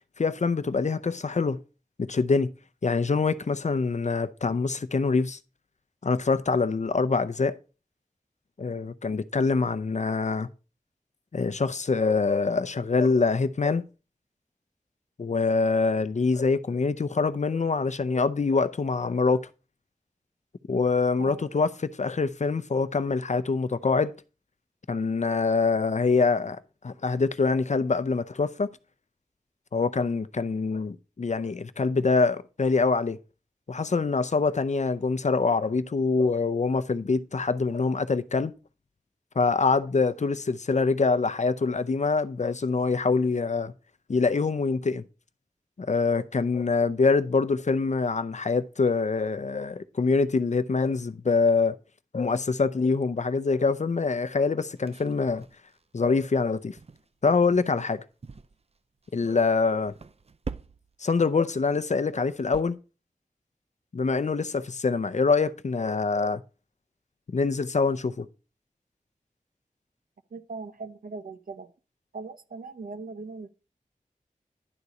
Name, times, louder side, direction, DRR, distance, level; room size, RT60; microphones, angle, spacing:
voice 1, 0.2-1.6 2.0-2.5 2.8-5.4 6.0-7.6 8.6-10.5 11.3-13.8 15.2-19.5 20.7-24.1 24.9-28.7 29.7-33.2 33.7-38.5 39.4-43.7 44.1-45.0 45.8-51.8 52.1-55.4 55.9-56.8 57.2-58.0 59.1-59.9 61.0-62.8 63.9-66.4 67.3-68.3, left 4 dB, 55° left, 0.6 m, -25 dB
sound 1, 54.7-56.5 56.8-57.1 57.5-57.8 58.2-58.8 59.0-59.4 59.9-61.0 61.4-61.6 61.9-62.6, right 5 dB, 45° right, 0.5 m, -43 dB
voice 2, 70.3-71.7 72.1-73.5, right 4 dB, 85° right, 0.7 m, -39 dB
11.0 x 4.1 x 4.8 m
wide cardioid pair, 45°, 14 cm